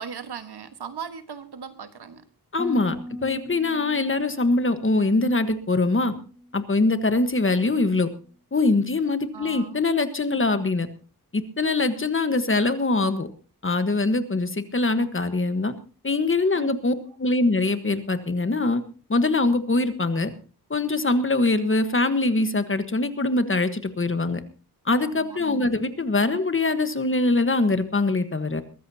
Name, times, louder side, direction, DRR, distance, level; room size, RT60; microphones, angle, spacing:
voice 1, 0.0-2.3 9.3-9.8 16.5-16.7 25.0-25.4, right 7 dB, 90° right, 1.5 m, -38 dB
voice 2, 2.5-3.0 3.2-6.1 6.5-8.1 8.5-10.9 11.3-13.3 13.6-15.7 16.0-16.9 17.2-18.8 19.1-20.3 20.7-24.4 24.8-28.6, left 2 dB, 30° left, 1.3 m, -23 dB
Harp, 2.6-6.7 7.0-7.5 8.0-8.4, equal, 5° right, 2.4 m, -41 dB
22.0 x 14.0 x 2.8 m
wide cardioid pair, 115°, 38 cm